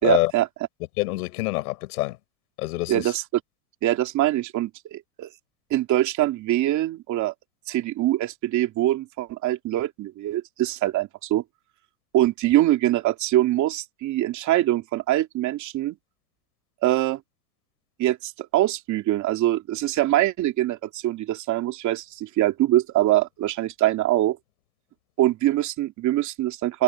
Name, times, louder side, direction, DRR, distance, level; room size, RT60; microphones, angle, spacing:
voice 1, 0.0-0.5 2.9-3.2 3.8-5.3 5.7-7.3 7.7-11.4 12.1-16.0 16.8-17.2 18.0-24.4 25.2-26.8, right 14 dB, 40° right, 2.7 m, -23 dB
voice 2, 1.0-2.2 2.6-3.1, left 19 dB, 80° left, 6.8 m, -25 dB
supercardioid pair, 135°, 45 cm